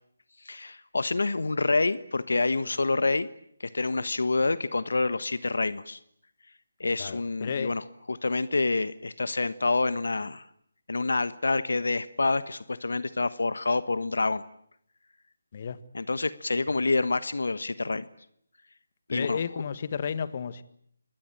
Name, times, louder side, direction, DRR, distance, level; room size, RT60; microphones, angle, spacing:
voice 1, 0.4-3.3 3.6-6.0 6.8-10.4 10.9-14.4 15.9-18.1 19.1-19.4, left 3 dB, 70° left, 1.3 m, -27 dB
voice 2, 7.0-7.7 15.5-15.8 19.1-20.6, left 7 dB, 40° left, 1.6 m, -32 dB
27.0 x 21.5 x 9.1 m
figure-of-eight pair, 155°, 0 cm